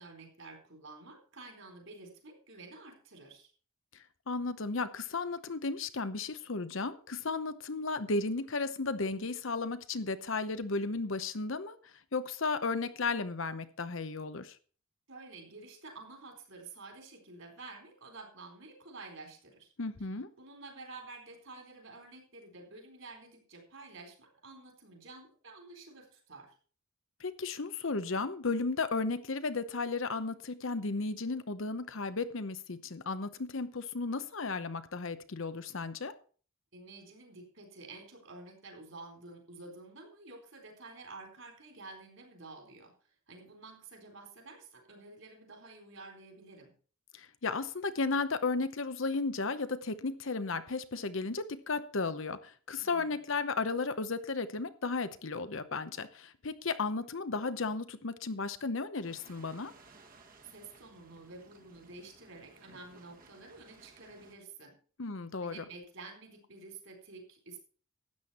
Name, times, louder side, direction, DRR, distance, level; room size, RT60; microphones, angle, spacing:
voice 1, 0.0-3.5 15.1-19.7 20.4-26.6 36.7-46.7 52.8-53.2 60.5-64.8 65.4-67.6, right 3 dB, 60° right, 3 dB, 4.1 m, -50 dB
voice 2, 4.3-11.8 12.1-14.6 19.8-20.3 27.2-36.1 47.1-59.7 65.0-65.6, left 3 dB, 60° left, 12 dB, 0.8 m, -34 dB
sound 1, 59.0-64.4, right 3 dB, 40° right, 1.5 m, -59 dB
12.5 x 8.9 x 4.3 m, 0.41 s
head